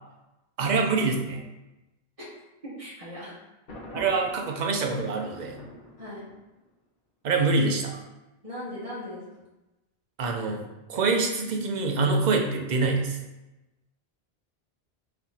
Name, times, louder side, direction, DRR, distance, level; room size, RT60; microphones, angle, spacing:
voice 1, 0.6-1.4 3.9-5.6 7.2-8.0 10.2-10.6 10.9-13.2, right 3 dB, 50° right, 2 dB, 0.7 m, -25 dB
voice 2, 2.6-3.3 6.0-6.3 8.4-9.2, left 1 dB, 35° right, -6 dB, 1.5 m, -38 dB
Thunder, 3.7-6.7, left 1 dB, 65° left, 1.1 m, -45 dB
4.2 x 2.9 x 4.1 m, 1.0 s
omnidirectional pair, 1.0 m